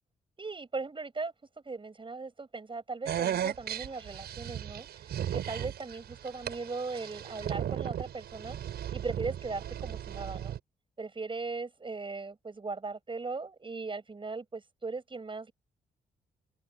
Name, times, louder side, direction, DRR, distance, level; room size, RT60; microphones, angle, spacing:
voice 1, 0.4-1.3 1.7-4.9 5.3-8.6 8.9-10.6 11.0-15.5, right 4 dB, 30° right, 7.7 m, -38 dB
sound 1, 3.1-10.6, right 10 dB, 75° right, 5.7 m, -36 dB
open air
cardioid pair, 70°, 17 cm